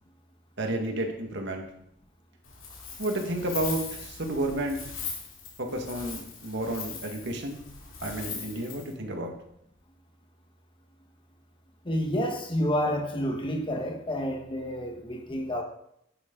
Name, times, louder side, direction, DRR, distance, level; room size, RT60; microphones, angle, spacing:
voice 1, 0.6-1.6 3.0-4.8 5.6-7.6 8.0-9.3, right 1 dB, 60° right, 3 dB, 1.7 m, -31 dB
Wind, 2.4-8.9, left 5 dB, 75° left, 2.9 m, -40 dB
voice 2, 11.8-15.6, equal, 25° left, 4 dB, 1.3 m, -29 dB
10.5 x 8.8 x 3.9 m, 0.73 s
head